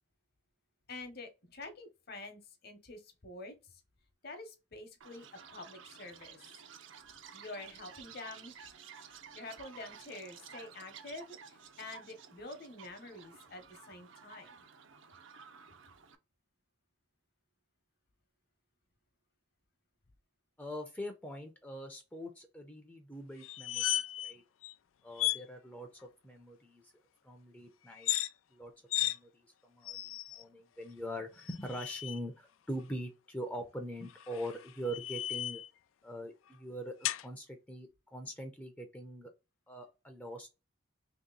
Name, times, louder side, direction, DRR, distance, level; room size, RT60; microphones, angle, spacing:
voice 1, 0.9-3.8 4.2-5.3 5.5-6.4 7.3-8.7 9.3-14.6, left 2 dB, 50° left, 0.9 m, -47 dB
Chirp tweet, 5.0-16.2, right 7 dB, 75° right, 0.6 m, -53 dB
voice 2, 20.6-24.4 25.0-26.9 27.2-28.1 28.5-28.7 29.0-35.6 36.0-39.3 39.7-40.5, equal, 10° left, 0.4 m, -43 dB
sound 1, 23.4-24.3 24.6-24.7 25.2-25.4 27.9-28.3 28.9-29.2 29.8-30.4 31.4-32.2 34.1-35.7 37.0-37.2, left 14 dB, 85° left, 0.3 m, -35 dB
2.9 x 2.8 x 3.8 m
head